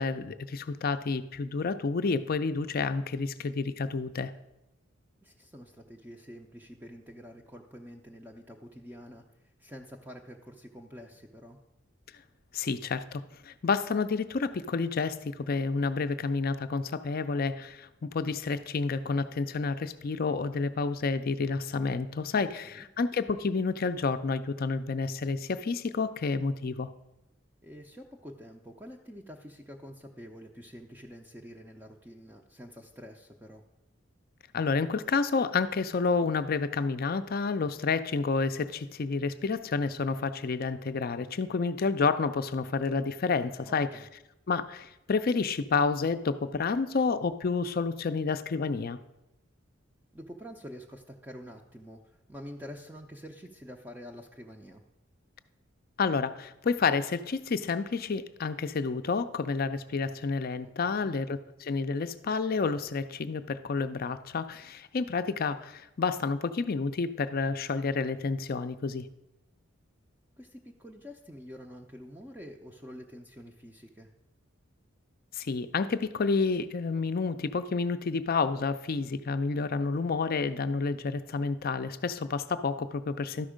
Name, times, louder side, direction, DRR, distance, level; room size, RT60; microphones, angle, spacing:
voice 1, 0.0-4.3 12.5-26.9 34.5-43.9 44.5-49.0 56.0-69.1 75.3-83.5, left 4 dB, 45° left, 11 dB, 0.4 m, -29 dB
voice 2, 5.2-11.6 22.3-22.9 27.6-33.6 43.6-44.1 50.1-54.8 60.6-61.2 70.4-74.1, equal, 10° right, 1 dB, 0.5 m, -47 dB
12.5 x 5.3 x 5.0 m, 0.90 s
head